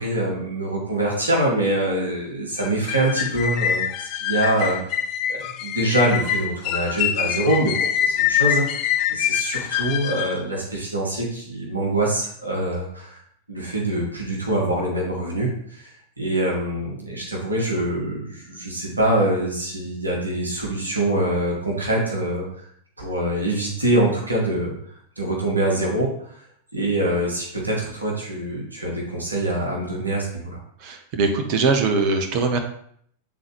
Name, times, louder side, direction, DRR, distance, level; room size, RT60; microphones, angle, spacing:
voice 1, 0.0-4.9 5.3-13.2 13.5-22.5 23.0-24.7 25.2-26.5 26.7-30.6, right 1 dB, 80° right, -2 dB, 1.4 m, -24 dB
sound 1, 2.6-10.4, left 10 dB, 40° left, 0.4 m, -24 dB
voice 2, 30.8-32.6, right 4 dB, 45° right, 4 dB, 0.9 m, -21 dB
8.3 x 3.9 x 3.0 m, 0.64 s
figure-of-eight pair, 90°, 0 cm